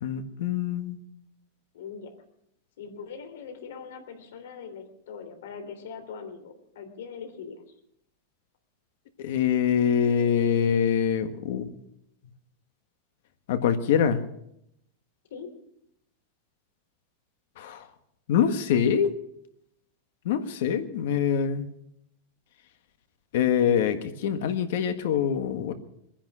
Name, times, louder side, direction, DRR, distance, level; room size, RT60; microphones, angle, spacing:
voice 1, 0.0-1.0 9.2-11.7 13.5-14.2 17.6-17.9 18.3-19.1 20.2-21.7 23.3-25.7, left 8 dB, 60° left, 9 dB, 1.5 m, -24 dB
voice 2, 1.7-2.1 2.8-7.6 15.3-15.5, left 6 dB, 80° left, 6 dB, 3.3 m, -41 dB
22.0 x 10.5 x 6.3 m, 0.75 s
supercardioid pair, 170°, 0 cm